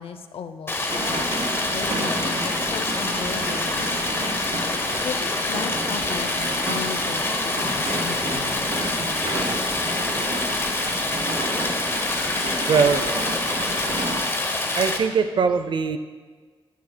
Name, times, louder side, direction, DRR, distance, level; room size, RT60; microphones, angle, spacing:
voice 1, 0.0-4.2 5.0-7.2 7.6-8.7, left 7 dB, 70° left, 9 dB, 0.5 m, -36 dB
Stream, 0.7-15.0, left 2 dB, 25° left, 0.7 m, -26 dB
sound 1, 0.9-14.0 14.3-14.9, left 2 dB, 40° left, 2.9 m, -44 dB
sound 2, 0.9-14.2, right 2 dB, 80° right, 2.9 m, -31 dB
voice 2, 12.7-13.1 14.7-16.0, right 5 dB, 55° right, 10 dB, 0.5 m, -21 dB
12.5 x 9.2 x 2.2 m, 1.4 s
wide cardioid pair, 160°, 10 cm